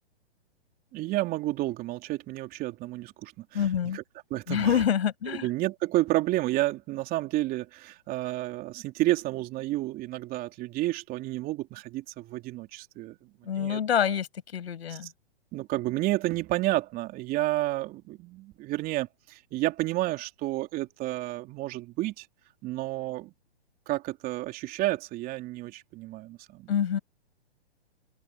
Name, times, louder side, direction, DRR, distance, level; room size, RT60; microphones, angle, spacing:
voice 1, 0.9-3.6 3.9-4.0 4.3-4.8 5.4-13.2 13.5-14.1 15.5-22.3 22.6-23.3 23.9-26.7, right 17 dB, 25° right, 3.3 m, -30 dB
voice 2, 3.5-4.0 4.5-5.5 13.4-14.3 14.5-15.1 26.7-27.0, left 8 dB, 70° left, 6.0 m, -26 dB
open air
hypercardioid pair, 135°, 33 cm